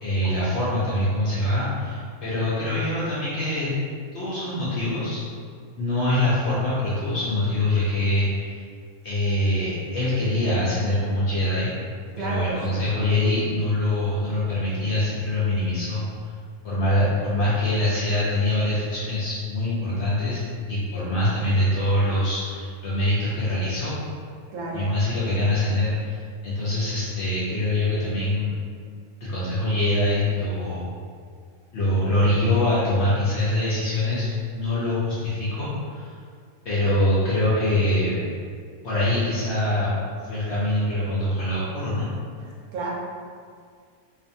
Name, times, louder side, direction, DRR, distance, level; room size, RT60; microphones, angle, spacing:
voice 1, 0.0-3.7 4.1-5.2 5.8-8.6 9.0-11.7 12.2-16.0 16.6-20.4 20.7-24.0 24.7-28.5 29.2-30.9 31.7-36.1 36.6-38.2 38.8-39.9 40.3-42.1, left 1 dB, 65° left, -9 dB, 0.7 m, -24 dB
voice 2, 12.2-12.8 24.5-24.8 42.7-42.9, right 2 dB, 75° right, -3 dB, 1.0 m, -31 dB
2.5 x 2.5 x 2.6 m, 2.1 s
omnidirectional pair, 1.6 m